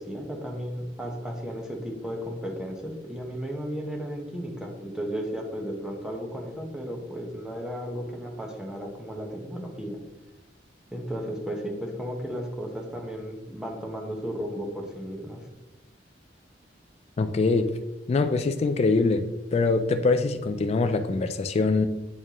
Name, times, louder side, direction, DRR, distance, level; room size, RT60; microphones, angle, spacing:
voice 1, 0.0-10.0 10.9-15.4, equal, 5° right, 0 dB, 1.0 m, -34 dB
voice 2, 17.2-17.7 18.1-21.9, left 3 dB, 35° left, 8 dB, 0.3 m, -23 dB
8.3 x 4.3 x 3.0 m, 1.1 s
head